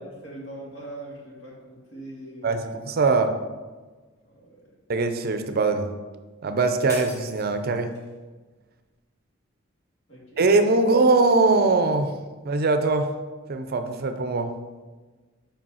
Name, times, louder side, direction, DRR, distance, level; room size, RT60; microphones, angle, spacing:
voice 1, 0.0-2.7 4.2-4.6 10.1-10.4, right 1 dB, 60° left, -4 dB, 2.3 m, -41 dB
voice 2, 2.4-3.3 4.9-5.9 6.4-7.9 10.4-12.1 12.4-13.1 13.5-14.5, right 3 dB, 50° right, 8 dB, 0.5 m, -21 dB
sound 1, 6.9-8.1, equal, 15° left, 2.0 m, -41 dB
5.2 x 5.1 x 5.5 m, 1.3 s
head